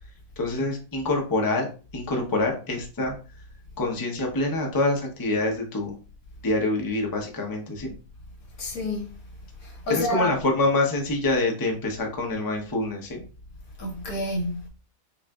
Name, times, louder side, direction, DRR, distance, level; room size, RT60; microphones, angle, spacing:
voice 1, 0.4-1.7 1.9-3.1 3.8-5.9 6.4-7.9 9.9-13.2, left 2 dB, 20° left, 0.6 m, -26 dB
voice 2, 8.6-9.2 9.6-10.4 13.8-14.7, left 1 dB, 80° left, 1.6 m, -29 dB
5.5 x 2.5 x 2.3 m
omnidirectional pair, 1.5 m